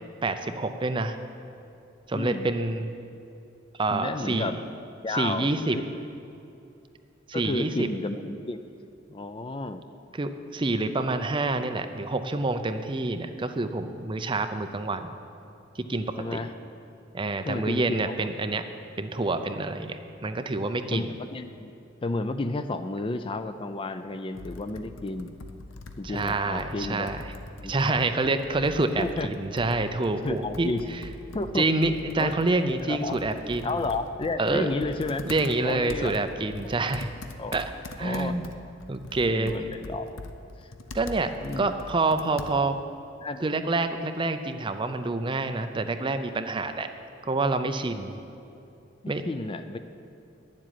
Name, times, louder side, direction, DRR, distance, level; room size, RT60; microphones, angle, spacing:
voice 1, 0.2-1.2 2.1-2.9 3.8-4.5 5.1-5.8 7.3-7.9 10.1-15.2 15.8-16.4 17.1-18.6 19.0-21.1 26.0-27.2 27.6-30.7 31.5-33.7 34.4-34.9 35.2-37.1 37.5-37.6 38.0-38.5 38.9-39.7 40.9-42.8 43.4-46.9 47.2-48.2 49.1-49.2, right 2 dB, 25° right, 8 dB, 0.5 m, -27 dB
voice 2, 2.1-2.5 3.9-4.6 5.0-5.8 7.3-8.6 9.1-9.9 16.2-16.5 17.4-18.1 20.9-21.7 22.0-25.3 26.0-27.1 27.6-28.0 29.0-29.3 30.2-30.8 31.3-31.7 32.2-32.4 32.9-33.2 33.6-35.2 35.6-36.1 37.4-37.5 38.0-38.5 39.3-40.2 40.6-40.7 41.4-41.9 43.2-43.5 49.0-49.8, left 2 dB, 25° left, 10 dB, 0.4 m, -32 dB
Computer keyboard, 24.3-42.9, left 2 dB, 85° left, 0.7 m, -43 dB
9.9 x 7.5 x 9.4 m, 2.7 s
head